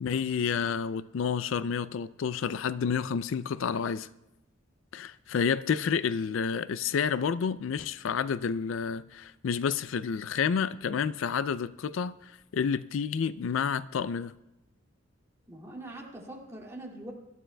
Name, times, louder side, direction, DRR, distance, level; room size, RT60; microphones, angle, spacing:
voice 1, 0.0-4.1 4.9-14.3, left 6 dB, 75° left, 0.4 m, -30 dB
voice 2, 15.5-17.1, right 1 dB, 15° right, 2.3 m, -43 dB
23.5 x 12.5 x 2.2 m
head